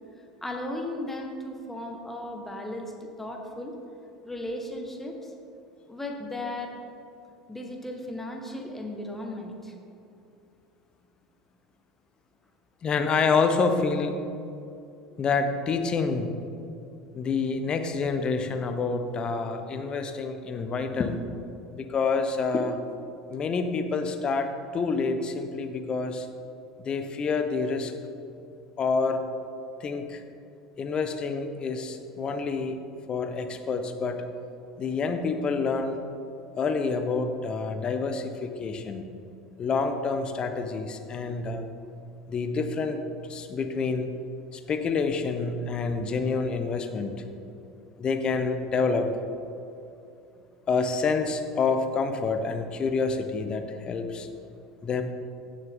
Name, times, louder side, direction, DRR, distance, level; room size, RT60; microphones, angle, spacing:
voice 1, 0.4-3.8 4.2-5.3 5.9-6.8 7.5-9.7, left 1 dB, 10° left, 2 dB, 1.7 m, -36 dB
voice 2, 12.8-14.1 15.2-16.3 17.1-21.2 21.7-22.8 23.3-26.3 26.8-27.9 28.8-29.2 29.8-30.2 30.8-32.8 33.1-34.2 34.8-36.0 36.6-39.0 39.6-41.6 42.3-43.0 43.3-44.1 44.5-47.1 48.0-49.1 50.7-54.3 54.8-55.0, left 4 dB, 35° left, 7 dB, 1.0 m, -27 dB
16.0 x 6.6 x 3.8 m, 2.7 s
hypercardioid pair, 75°, 3 cm